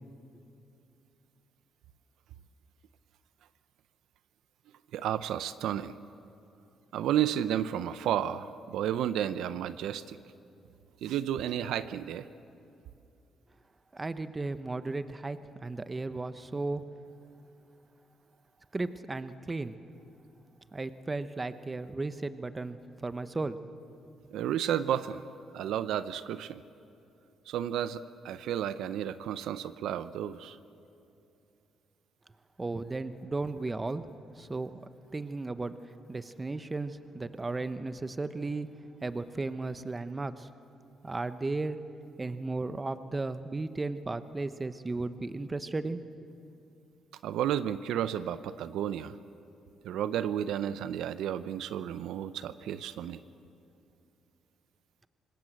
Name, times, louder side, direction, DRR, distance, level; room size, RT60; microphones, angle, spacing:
voice 1, 4.9-5.9 6.9-10.2 11.0-12.3 24.3-25.2 25.5-26.6 27.5-30.6 47.2-49.2 49.8-53.2, right 10 dB, 85° right, 13 dB, 0.6 m, -32 dB
voice 2, 13.9-16.8 18.7-19.7 20.7-23.6 32.6-34.1 34.3-35.8 36.1-38.7 39.0-40.5 41.0-41.8 42.2-46.3, right 3 dB, 20° right, 11 dB, 1.0 m, -35 dB
26.0 x 20.0 x 7.7 m, 2.7 s
cardioid pair, 90°, 0 cm